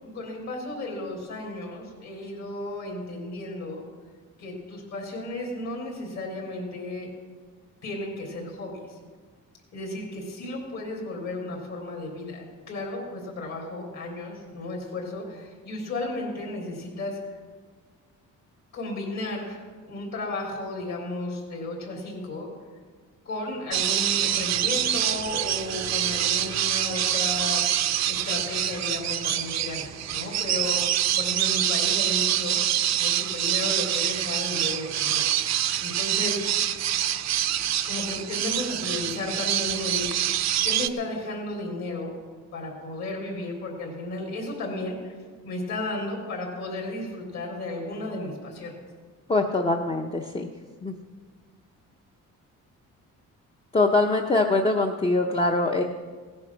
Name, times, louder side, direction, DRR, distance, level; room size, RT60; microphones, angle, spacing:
voice 1, 0.0-3.8 4.4-7.1 7.8-9.0 9.7-17.2 18.7-22.5 23.3-27.6 28.1-30.9 31.2-35.2 35.8-36.4 37.8-40.1 40.6-42.1 42.5-45.2 45.4-48.7, left 2 dB, 60° left, -1 dB, 3.8 m, -34 dB
sound 1, 23.7-40.9, right 11 dB, 60° right, 0.7 m, -26 dB
voice 2, 49.3-50.5 50.8-50.9 53.7-55.8, left 2 dB, 20° left, 2 dB, 0.7 m, -23 dB
17.0 x 9.7 x 6.0 m, 1.5 s
cardioid pair, 155°, 31 cm